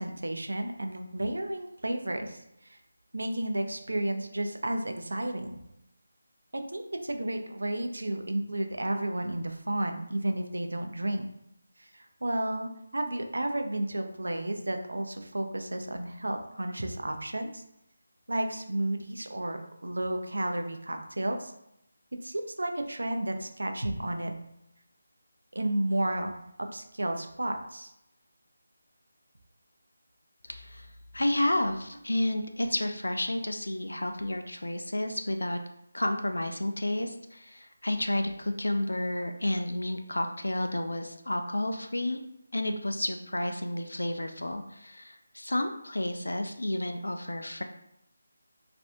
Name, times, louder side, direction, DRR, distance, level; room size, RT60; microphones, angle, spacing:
voice 1, 0.0-2.4 2.7-2.8 3.1-5.6 6.5-11.3 11.8-17.6 18.3-21.5 22.2-24.3 25.5-27.9, right 1 dB, 80° right, 5 dB, 0.5 m, -32 dB
voice 2, 30.5-30.9 31.1-35.6 35.9-42.2 42.5-47.6, left 1 dB, 90° left, 5 dB, 0.4 m, -31 dB
3.3 x 2.5 x 2.6 m, 0.81 s
figure-of-eight pair, 165°, 0 cm